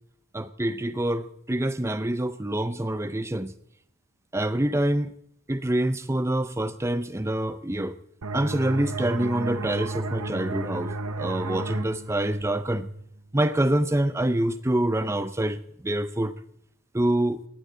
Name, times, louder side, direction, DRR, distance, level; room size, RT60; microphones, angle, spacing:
voice 1, 0.3-3.5 4.3-5.1 5.5-8.0 8.3-12.9 13.3-15.6 15.8-16.3 16.9-17.4, right 1 dB, 10° right, 13 dB, 0.6 m, -26 dB
sound 1, 8.2-13.6, right 2 dB, 90° right, 1.2 m, -33 dB
18.5 x 18.0 x 3.9 m, 0.71 s
head